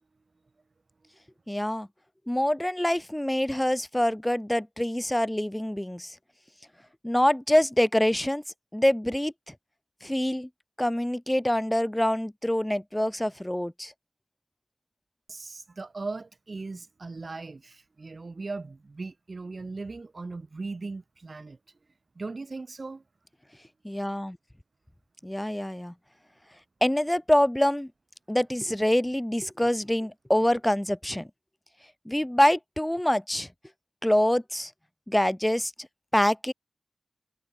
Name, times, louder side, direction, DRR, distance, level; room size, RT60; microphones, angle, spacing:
voice 1, 1.5-1.9 2.3-6.2 7.0-8.4 8.7-9.5 10.0-10.5 10.8-13.9 23.8-24.4 25.2-25.9 26.8-27.9 28.3-31.3 32.1-33.5 34.0-34.7 35.1-35.7 36.1-36.5, left 1 dB, 10° left, 0.8 m, -25 dB
voice 2, 15.3-21.6 22.1-23.0, right 3 dB, 65° right, 2.8 m, -38 dB
wide cardioid pair, 75°, 0 cm